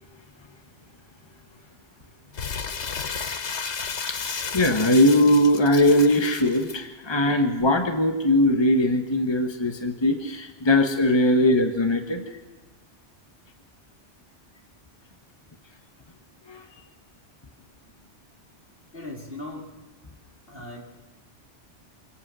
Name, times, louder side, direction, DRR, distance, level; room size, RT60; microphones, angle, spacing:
Crumpling crinkling, 2.3-6.8, left 6 dB, 70° left, 1.5 m, -33 dB
voice 1, 4.1-12.2 16.5-16.6, left 1 dB, 20° left, 6 dB, 1.5 m, -20 dB
voice 2, 18.9-19.7 20.5-20.8, left 1 dB, 50° left, 0 dB, 4.2 m, -38 dB
25.5 x 17.5 x 6.3 m, 1.2 s
omnidirectional pair, 1.2 m